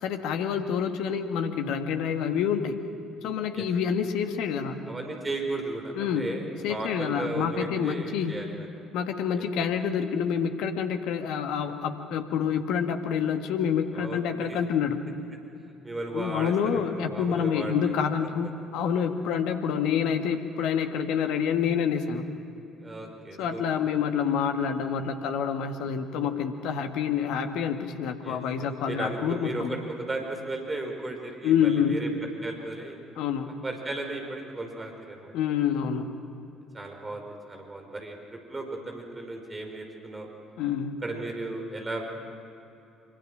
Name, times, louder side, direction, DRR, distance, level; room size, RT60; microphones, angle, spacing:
voice 1, 0.0-2.8 3.2-4.8 5.9-6.3 6.6-8.3 8.9-15.0 16.1-22.3 23.4-29.8 31.4-32.0 33.2-33.5 35.3-36.1 40.6-41.0, left 7 dB, 60° left, 6 dB, 1.7 m, -27 dB
voice 2, 4.9-8.7 13.9-14.6 15.8-18.0 22.8-23.6 28.2-32.1 32.4-33.0 33.6-35.3 36.7-40.3 41.0-42.0, right 2 dB, 20° right, 3 dB, 4.9 m, -35 dB
25.5 x 25.5 x 6.3 m, 2.7 s
figure-of-eight pair, 50°, 0 cm